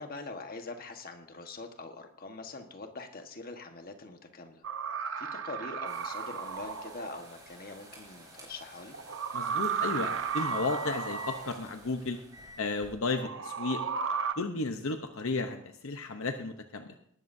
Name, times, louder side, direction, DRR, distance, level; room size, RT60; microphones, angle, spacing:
voice 1, 0.0-4.6 5.2-8.9, left 3 dB, 45° left, 5 dB, 1.4 m, -43 dB
sound 1, 4.6-7.2 8.9-11.6 13.2-14.3, right 6 dB, 60° right, 0.9 m, -34 dB
sound 2, 5.8-12.9, equal, 20° right, 5.4 m, -49 dB
voice 2, 9.3-12.2 12.6-13.8 14.4-16.9, left 3 dB, 70° left, 6 dB, 0.9 m, -33 dB
19.0 x 13.0 x 2.7 m, 0.69 s
head